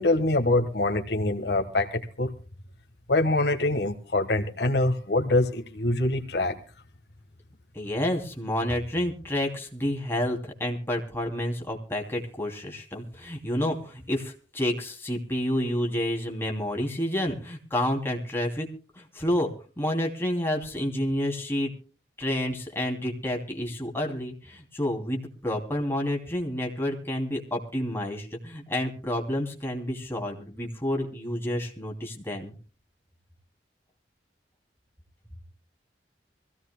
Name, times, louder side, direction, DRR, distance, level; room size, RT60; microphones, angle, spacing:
voice 1, 0.0-2.3 3.1-6.5, left 2 dB, 65° left, 4 dB, 1.4 m, -24 dB
voice 2, 7.7-18.7 18.9-19.5 19.8-21.7 22.2-32.5, left 1 dB, 15° left, 0 dB, 2.8 m, -29 dB
25.0 x 16.0 x 2.2 m, 0.37 s
head